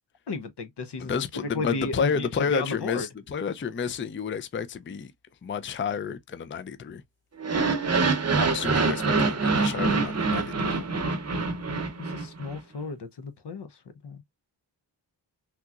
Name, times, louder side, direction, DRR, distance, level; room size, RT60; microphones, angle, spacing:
voice 1, 0.3-1.1 1.4-3.1 12.0-13.8 14.0-14.2, left 3 dB, 60° left, 0.8 m, -34 dB
voice 2, 1.0-5.1 5.4-7.0 8.4-10.8, left 6 dB, 30° left, 0.4 m, -30 dB
sound 1, 7.4-12.6, right 4 dB, 35° right, 0.8 m, -25 dB
3.5 x 2.9 x 2.4 m
cardioid pair, 60°, 45 cm